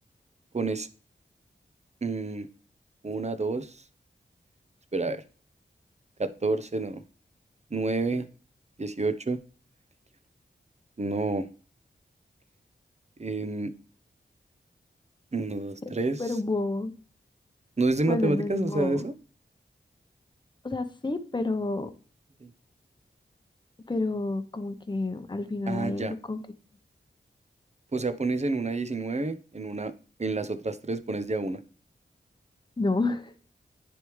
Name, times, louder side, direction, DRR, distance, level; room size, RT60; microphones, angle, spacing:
voice 1, 0.5-0.9 2.0-2.5 3.0-3.8 4.9-5.2 6.2-7.0 7.7-8.3 8.8-9.4 11.0-11.5 13.2-13.7 15.3-16.2 17.8-19.1 22.4-22.5 25.7-26.2 27.9-29.9 30.2-31.6, right 3 dB, 35° right, 0.8 m, -29 dB
voice 2, 16.2-16.9 18.1-19.1 20.6-21.9 23.9-26.4 32.8-33.3, left 2 dB, 25° left, 0.8 m, -29 dB
9.9 x 3.5 x 3.2 m
cardioid pair, 40°, 20 cm